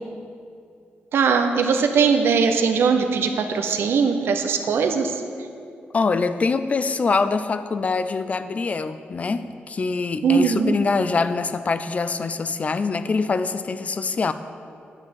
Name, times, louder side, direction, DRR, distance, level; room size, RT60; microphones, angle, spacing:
voice 1, 1.1-5.1 10.2-10.7, right 5 dB, 80° right, 6 dB, 0.7 m, -20 dB
voice 2, 5.9-14.3, left 4 dB, 40° left, 12 dB, 0.4 m, -24 dB
9.6 x 4.5 x 6.9 m, 2.4 s
cardioid pair, 110°, 4 cm